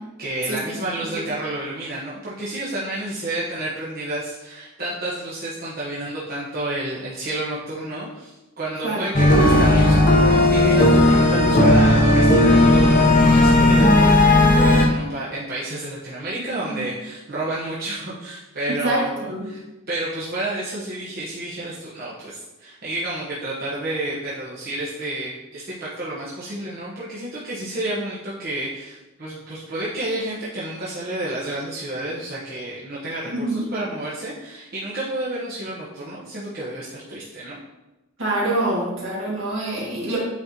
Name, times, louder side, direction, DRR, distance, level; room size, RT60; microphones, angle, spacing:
voice 1, 0.2-19.6 19.9-37.6, right 1 dB, 45° right, -8 dB, 1.0 m, -30 dB
sound 1, 9.1-14.9, left 1 dB, 45° left, 0.8 m, -15 dB
voice 2, 18.7-19.5 33.3-33.6 38.2-40.2, right 1 dB, 65° right, -4 dB, 1.9 m, -25 dB
8.7 x 3.9 x 2.8 m, 1.0 s
head